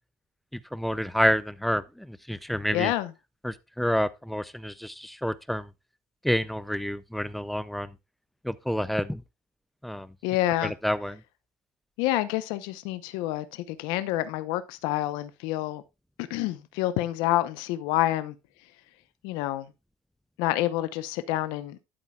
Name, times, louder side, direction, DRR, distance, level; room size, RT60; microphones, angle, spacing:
voice 1, 0.5-2.9 3.4-5.7 6.2-8.0 8.4-9.2 9.8-10.1 10.6-11.2, equal, ahead, 0.4 m, -28 dB
voice 2, 2.7-3.1 10.2-10.7 12.0-15.8 16.3-18.3 19.2-19.7 20.4-21.8, left 15 dB, 80° left, 0.8 m, -28 dB
11.5 x 8.5 x 2.3 m
cardioid pair, 180°, 8 cm